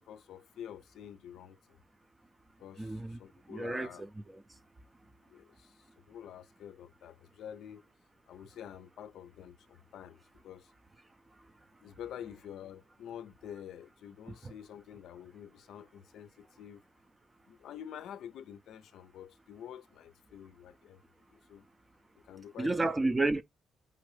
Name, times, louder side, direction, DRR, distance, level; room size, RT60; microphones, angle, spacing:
voice 1, 0.0-1.8 2.6-4.0 5.3-7.9 8.3-10.7 11.8-16.8 17.5-21.0 21.3-21.7 22.2-22.8, left 9 dB, 75° left, 0.5 m, -48 dB
voice 2, 2.8-3.2 3.5-4.4 22.6-23.4, right 2 dB, 20° right, 0.6 m, -31 dB
5.0 x 2.7 x 3.2 m
cardioid pair, 90°, 0 cm